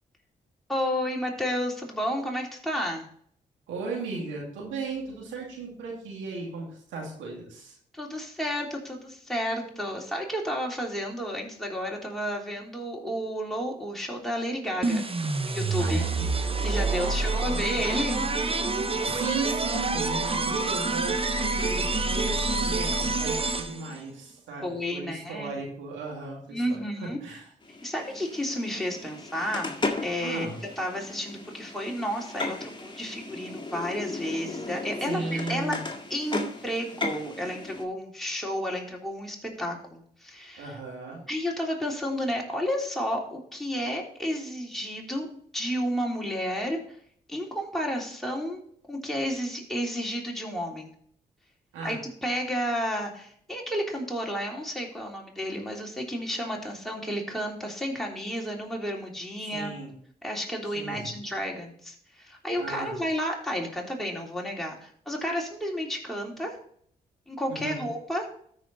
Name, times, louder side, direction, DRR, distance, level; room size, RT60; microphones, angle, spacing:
voice 1, 0.7-3.1 7.9-16.0 16.6-18.2 24.6-25.5 26.5-27.2 27.8-29.7 30.0-30.5 30.8-35.7 36.1-40.7 41.3-45.3 45.5-46.8 47.3-50.9 51.8-52.0 52.2-59.7 60.2-66.6 67.3-68.3, equal, ahead, -2 dB, 3.4 m, -31 dB
voice 2, 3.7-7.8 15.8-16.3 17.0-18.0 18.7-22.9 23.2-27.5 30.2-30.6 35.1-35.8 40.6-41.2 51.7-52.0 59.4-59.9 60.7-61.1 62.6-63.0 67.5-67.9, right 3 dB, 90° right, -1 dB, 2.3 m, -36 dB
sound 1, 14.8-24.0, right 3 dB, 30° right, 1.0 m, -27 dB
sound 2, 27.6-37.9, left 3 dB, 25° left, 1.8 m, -36 dB
13.5 x 5.0 x 4.1 m, 0.62 s
supercardioid pair, 45°, 19 cm